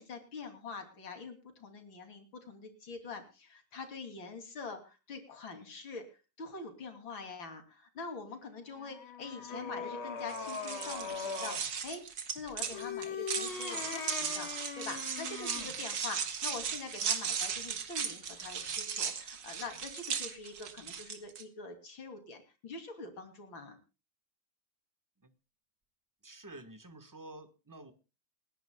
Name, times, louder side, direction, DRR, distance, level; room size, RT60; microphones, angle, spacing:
voice 1, 0.0-6.1 6.4-12.0 12.3-23.8, left 4 dB, 65° left, 6 dB, 3.7 m, -45 dB
sound 1, 8.7-11.7 12.6-15.8, left 5 dB, 90° left, 2.9 m, -40 dB
sound 2, 10.3-21.4, right 7 dB, 60° right, 2.1 m, -37 dB
voice 2, 26.2-27.9, right 1 dB, 10° right, 9 dB, 0.9 m, -49 dB
28.0 x 11.0 x 2.3 m, 0.31 s
omnidirectional pair, 2.3 m